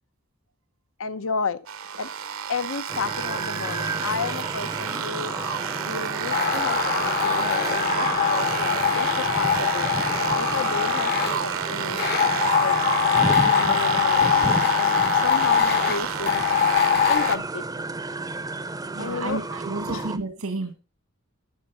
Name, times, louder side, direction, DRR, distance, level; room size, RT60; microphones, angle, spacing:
voice 1, 1.0-1.6 2.0-2.1 2.5-5.3 5.8-9.9 10.3-12.8 13.2-14.5 14.7-16.5 17.1-17.6 19.0-19.4 19.9-20.1, left 4 dB, 65° left, 0.9 m, -32 dB
sound 1, 1.7-17.4, right 7 dB, 65° right, 0.9 m, -30 dB
sound 2, 2.9-20.2, right 2 dB, 15° right, 0.7 m, -32 dB
sound 3, 6.3-11.4 12.0-17.4, left 7 dB, 50° left, 1.2 m, -23 dB
voice 2, 18.9-20.7, right 2 dB, 90° right, 2.0 m, -31 dB
12.5 x 7.8 x 5.5 m
head